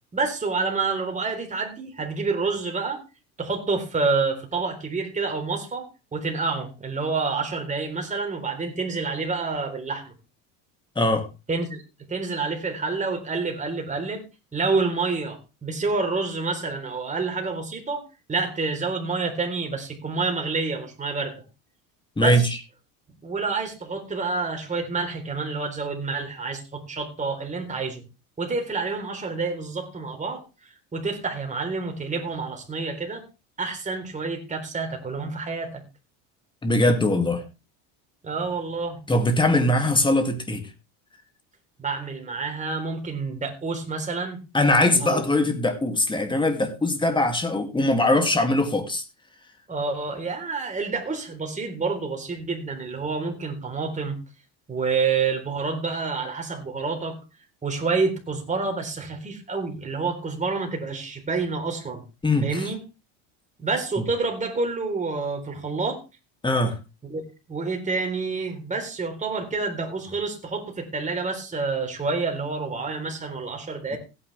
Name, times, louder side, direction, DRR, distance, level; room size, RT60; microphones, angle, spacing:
voice 1, 0.1-3.0 3.4-10.1 11.5-11.8 12.1-14.2 14.5-18.0 18.3-21.4 22.2-22.5 23.2-28.0 28.4-30.4 30.9-33.2 33.6-35.8 38.2-39.0 41.8-44.4 45.0-45.2 49.7-54.2 54.7-57.2 57.6-62.0 62.4-62.8 63.6-66.0 67.0-67.2 67.5-74.0, right 4 dB, 20° right, 3.8 m, -28 dB
voice 2, 11.0-11.3 22.2-22.4 36.6-37.4 39.1-40.7 44.5-49.0 62.2-62.7 66.4-66.8 73.9-74.0, left 1 dB, 10° left, 2.4 m, -21 dB
16.0 x 9.6 x 3.4 m
supercardioid pair, 120°, 38 cm